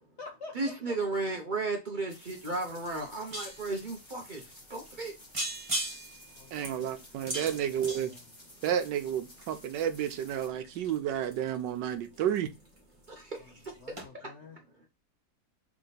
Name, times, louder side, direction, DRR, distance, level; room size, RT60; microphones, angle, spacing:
voice 1, 0.0-1.0 6.3-7.0 7.4-8.2 13.4-13.5 13.8-14.6, left 3 dB, 65° left, 0.7 m, -49 dB
voice 2, 0.5-4.4 4.7-5.1, right 3 dB, 55° right, 0.5 m, -34 dB
sound 1, 2.1-10.5, left 1 dB, 15° left, 1.1 m, -54 dB
sound 2, 2.5-2.6 2.8-3.8 4.4-4.5 4.9-5.1 5.3-8.9 9.4-12.8 13.0-13.4 13.6-13.7 14.0-14.1, right 1 dB, 20° right, 1.1 m, -38 dB
voice 3, 6.5-8.1 8.6-12.5, right 10 dB, 80° right, 1.3 m, -31 dB
3.6 x 3.4 x 3.9 m
omnidirectional pair, 1.9 m